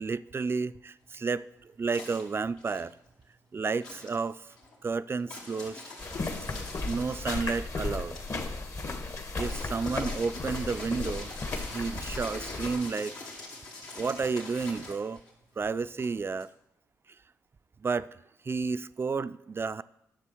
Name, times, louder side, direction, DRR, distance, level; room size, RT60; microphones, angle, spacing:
voice 1, 0.0-3.0 3.5-4.5 4.8-5.8 6.5-8.2 9.4-11.3 11.7-13.1 13.9-15.2 15.6-16.5 17.8-18.1 18.4-19.8, right 4 dB, 35° right, 0.4 m, -31 dB
sound 1, 1.0-3.4 3.7-16.4, left 2 dB, 85° left, 2.6 m, -44 dB
sound 2, 6.0-12.7, left 3 dB, 50° left, 1.3 m, -35 dB
10.5 x 6.8 x 4.5 m
supercardioid pair, 55°, 7 cm